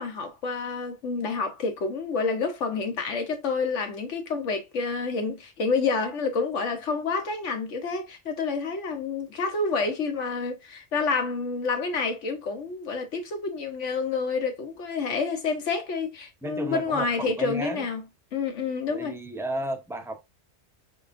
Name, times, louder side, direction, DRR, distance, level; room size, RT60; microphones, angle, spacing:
voice 1, 0.0-18.0 18.3-19.2, left 4 dB, 85° left, 1.3 m, -28 dB
voice 2, 16.4-17.9 18.9-20.2, right 1 dB, 5° right, 0.4 m, -33 dB
4.6 x 3.6 x 2.5 m
omnidirectional pair, 1.2 m